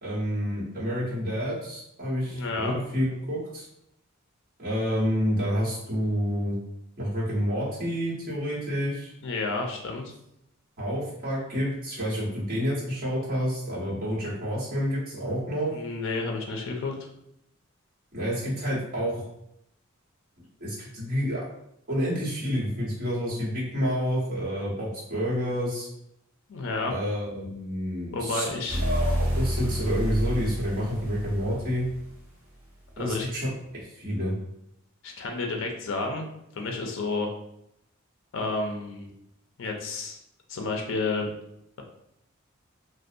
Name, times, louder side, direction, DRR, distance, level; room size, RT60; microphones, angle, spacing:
voice 1, 0.0-3.6 4.6-6.6 7.0-9.1 10.8-15.7 18.1-19.2 20.6-21.4 21.9-25.9 26.8-28.5 28.8-31.9 33.0-34.3, equal, 45° right, -8 dB, 1.1 m, -29 dB
voice 2, 2.2-2.8 9.2-10.1 15.7-16.9 26.5-26.9 28.1-28.8 33.0-33.3 35.0-36.3 36.5-37.3 38.3-39.1 39.6-40.2 40.5-41.3, left 3 dB, 60° left, 2 dB, 0.4 m, -30 dB
sound 1, 28.7-32.2, equal, 70° right, 0.8 m, -29 dB
2.6 x 2.1 x 2.5 m, 0.78 s
head